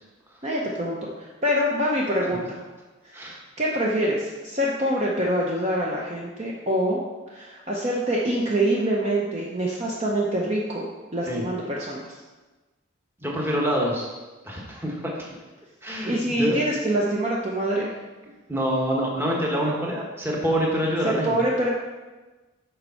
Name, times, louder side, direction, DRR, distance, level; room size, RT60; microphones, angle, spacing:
voice 1, 0.4-2.6 3.0-3.2 3.6-7.0 7.3-12.1 16.1-17.9 21.0-21.7, right 1 dB, 30° right, -4 dB, 0.7 m, -25 dB
voice 2, 13.2-14.1 14.4-15.3 15.8-16.6 18.5-21.4, equal, 10° right, -2 dB, 1.1 m, -26 dB
6.7 x 4.4 x 5.6 m, 1.2 s
head